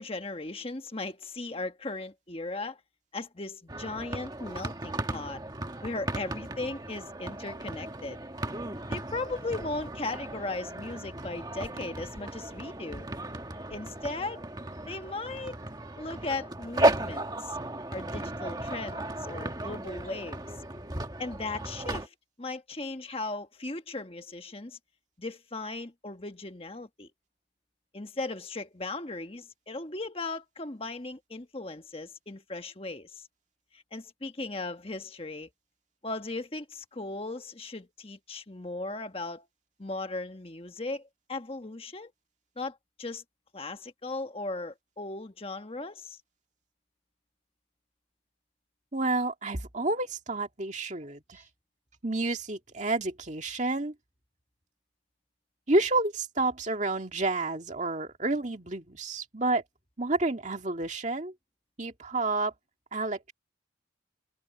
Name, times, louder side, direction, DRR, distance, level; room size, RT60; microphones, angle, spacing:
voice 1, 0.0-2.8 3.1-5.4 5.8-8.2 8.9-13.1 13.7-14.4 14.9-15.6 15.9-17.6 17.9-20.4 21.2-24.8 25.2-27.1 27.9-33.2 33.7-35.5 36.0-39.5 39.8-42.1 42.6-43.2 43.5-46.2, left 2 dB, 30° left, 1.3 m, -37 dB
sound 1, 3.7-22.1, right 1 dB, 20° right, 1.8 m, -35 dB
voice 2, 48.9-51.4 52.0-53.9 55.7-59.6 60.0-61.3 61.8-62.5 62.9-63.3, right 2 dB, 40° right, 2.1 m, -29 dB
head